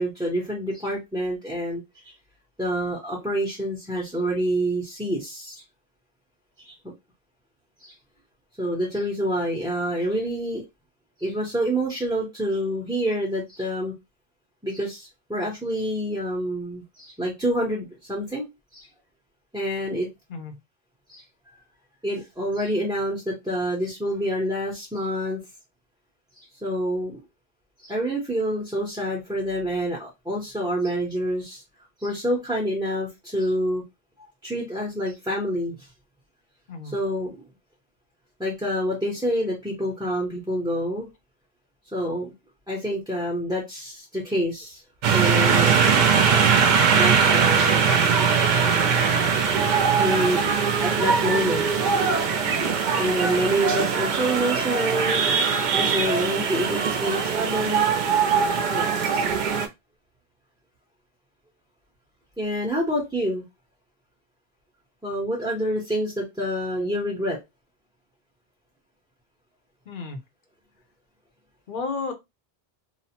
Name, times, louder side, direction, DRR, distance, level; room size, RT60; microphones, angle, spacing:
voice 1, 0.0-2.1 2.6-5.6 6.6-6.7 7.8-7.9 8.6-10.6 11.2-13.9 14.6-18.9 19.5-20.1 21.1-21.6 22.0-25.4 26.6-27.2 27.8-31.6 32.0-33.8 34.4-35.9 36.8-37.4 38.4-41.1 41.9-42.3 42.7-44.8 45.1-45.7 46.9-47.9 50.0-50.5 50.8-51.6 53.0-55.2 55.7-57.8 58.7-59.2 62.4-63.4 65.0-67.4, equal, 5° right, -3 dB, 0.6 m, -27 dB
sound 1, 45.0-59.7, right 6 dB, 55° right, 0.6 m, -21 dB
voice 2, 52.5-52.8 69.9-70.2 71.7-72.1, left 4 dB, 60° left, 5 dB, 0.8 m, -33 dB
2.8 x 2.0 x 2.8 m, 0.21 s
omnidirectional pair, 1.0 m